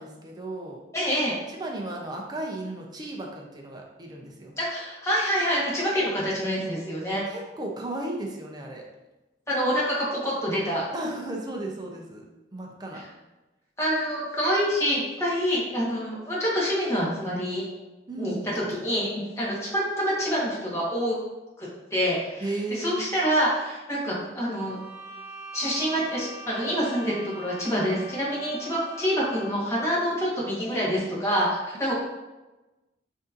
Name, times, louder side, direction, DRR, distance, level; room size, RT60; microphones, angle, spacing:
voice 1, 0.0-0.8 1.6-4.5 7.3-8.8 10.9-12.2 12.5-13.0 18.1-18.4 22.4-23.0, right 2 dB, 25° right, 0 dB, 0.6 m, -34 dB
voice 2, 0.9-1.3 4.6-7.2 9.5-10.9 12.9-13.0 13.8-17.6 18.2-21.2 21.6-24.8 25.5-31.9, equal, 15° left, -6 dB, 1.2 m, -26 dB
sound 1, 24.5-29.8, right 2 dB, 60° right, 1.1 m, -43 dB
6.3 x 2.7 x 2.5 m, 1.1 s
head